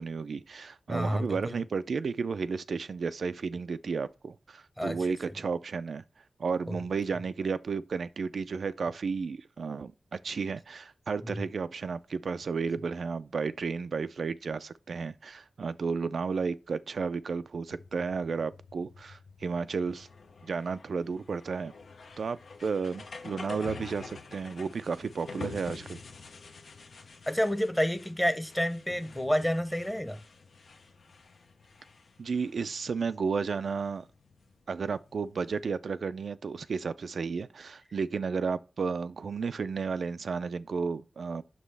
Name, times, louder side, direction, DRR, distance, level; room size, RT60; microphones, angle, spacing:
voice 1, 0.0-6.0 6.4-20.1 20.4-21.7 22.2-26.0 32.2-34.1 34.7-41.4, right 5 dB, 75° right, 0.3 m, -33 dB
voice 2, 0.9-1.6 4.8-5.1 6.7-6.8 11.2-11.3 27.3-30.2, equal, 10° left, 0.8 m, -29 dB
sound 1, 17.7-35.7, left 4 dB, 80° left, 0.8 m, -48 dB
7.4 x 6.0 x 3.3 m
wide cardioid pair, 140°, 0 cm